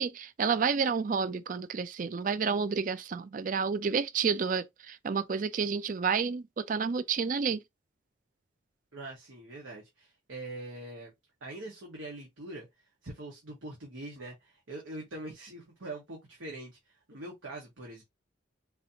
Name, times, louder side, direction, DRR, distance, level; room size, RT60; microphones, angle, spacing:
voice 1, 0.0-7.6, right 5 dB, 40° right, 0.4 m, -30 dB
voice 2, 8.9-11.1 11.4-12.7 13.0-18.0, right 2 dB, 85° right, 1.3 m, -43 dB
4.1 x 2.7 x 2.8 m
head